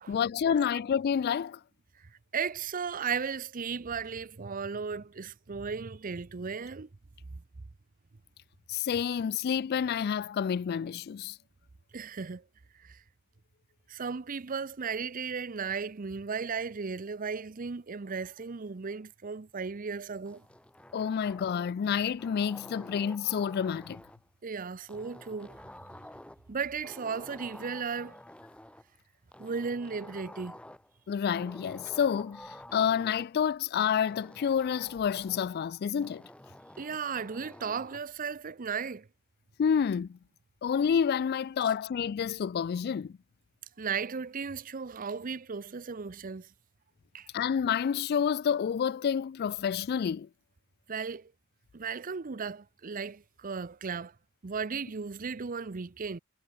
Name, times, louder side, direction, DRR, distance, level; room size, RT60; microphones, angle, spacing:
voice 1, 0.1-1.6 8.7-11.4 20.9-24.0 31.1-36.2 39.6-40.2 40.6-43.2 47.3-50.3, left 7 dB, 50° left, 0.3 m, -29 dB
voice 2, 2.3-6.9 7.3-7.4 11.9-12.4 12.8-13.0 13.9-20.4 24.4-25.6 26.5-28.2 29.4-30.6 36.8-39.1 43.8-46.5 47.1-47.3 50.9-51.3 51.7-54.1 54.4-56.2, right 5 dB, 40° right, 0.6 m, -35 dB
sound 1, 20.3-21.8 22.2-24.2 24.9-26.5 26.8-28.8 29.3-30.9 31.3-33.3 34.1-35.6 36.0-38.0, left 1 dB, 5° left, 0.7 m, -50 dB
head